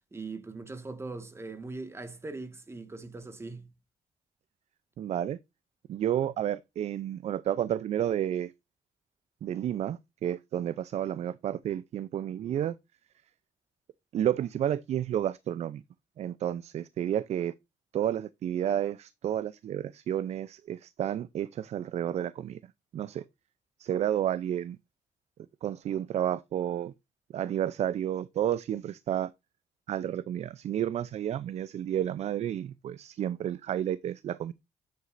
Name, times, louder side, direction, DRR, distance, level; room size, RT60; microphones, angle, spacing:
voice 1, 0.0-3.7, right 3 dB, 20° right, 1.6 m, -40 dB
voice 2, 5.0-5.4 5.9-8.5 9.4-12.7 14.1-15.8 16.2-17.5 17.9-22.6 22.9-23.2 23.8-24.8 25.6-26.9 27.3-29.3 29.9-34.5, right 10 dB, 55° right, 0.5 m, -31 dB
9.6 x 8.1 x 2.5 m
cardioid pair, 105°, 13 cm